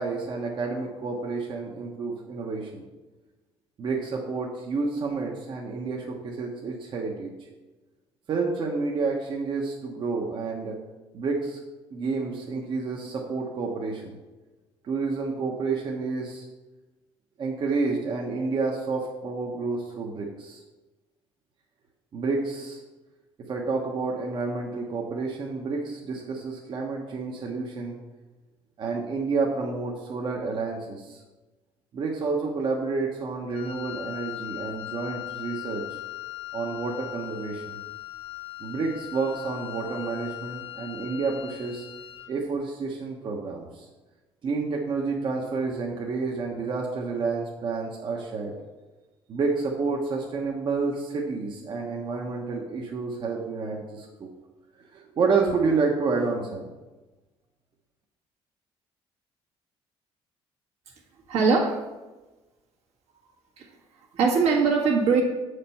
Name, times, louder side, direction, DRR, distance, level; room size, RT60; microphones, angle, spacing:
voice 1, 0.0-2.8 3.8-7.3 8.3-10.8 11.1-11.6 11.9-14.1 14.8-16.5 17.4-20.6 22.1-22.8 23.5-28.0 28.8-31.2 31.9-35.8 36.5-37.8 38.6-41.8 42.3-43.9 44.4-48.5 49.3-54.3 54.9-56.7, right 4 dB, 45° right, -1 dB, 1.1 m, -29 dB
Wind instrument woodwind instrument, 33.5-42.4, left 16 dB, 60° left, 0.5 m, -39 dB
voice 2, 61.3-61.8 63.6-63.7 64.1-65.2, right 5 dB, 75° right, -1 dB, 1.8 m, -21 dB
7.3 x 5.0 x 5.7 m, 1.2 s
cardioid pair, 120°, 11 cm